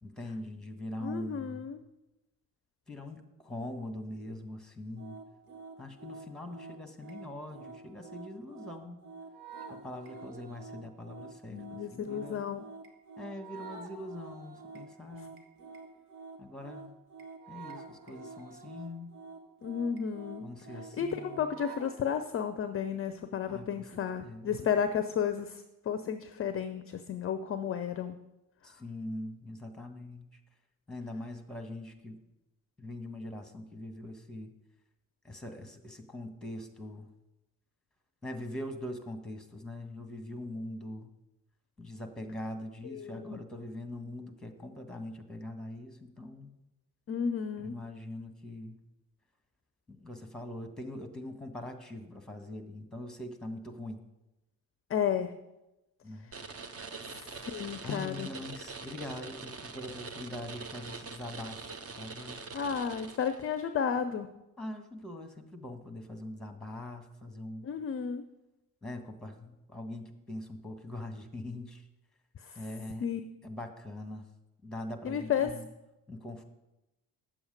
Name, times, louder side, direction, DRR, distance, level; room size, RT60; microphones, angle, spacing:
voice 1, 0.0-1.7 2.9-5.2 5.8-9.1 9.7-12.4 13.2-15.4 16.4-16.9 17.5-19.2 20.4-21.6 23.5-24.7 28.6-30.4 30.9-32.2 32.8-34.5 35.2-37.1 38.2-41.1 41.8-46.5 47.6-48.8 49.9-54.0 56.0-56.3 57.8-61.6 62.0-62.4 64.6-67.7 68.8-71.9 72.5-73.1 73.4-74.3 74.6-75.7 76.1-76.4, left 1 dB, ahead, 6 dB, 1.3 m, -42 dB
voice 2, 1.0-1.8 11.5-12.7 19.6-20.5 21.0-28.2 42.9-43.4 47.1-47.7 54.9-55.3 57.1-58.3 62.5-64.3 67.6-68.2 73.0-73.2 75.0-75.5, left 7 dB, 30° left, 9 dB, 0.6 m, -33 dB
sound 1, 5.0-22.0, right 4 dB, 80° right, 1.0 m, -48 dB
sound 2, 56.3-63.6, right 4 dB, 30° right, 0.9 m, -44 dB
9.1 x 7.1 x 5.2 m, 0.97 s
figure-of-eight pair, 45°, 45 cm